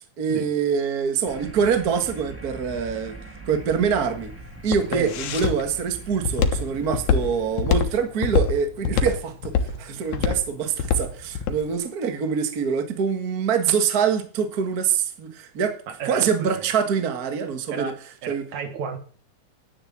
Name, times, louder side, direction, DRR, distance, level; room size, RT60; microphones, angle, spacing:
voice 1, 0.0-3.1 3.5-4.3 4.6-15.8 16.1-17.9 18.3-18.4, right 6 dB, 35° right, 7 dB, 1.8 m, -25 dB
sound 1, 1.2-8.0, right 2 dB, 5° right, 1.3 m, -42 dB
Walk footsteps, 3.5-11.6, left 6 dB, 75° left, 2.6 m, -24 dB
voice 2, 15.9-16.7 17.7-19.0, right 6 dB, 75° right, 7 dB, 3.1 m, -32 dB
10.5 x 10.0 x 7.4 m, 0.43 s
omnidirectional pair, 3.4 m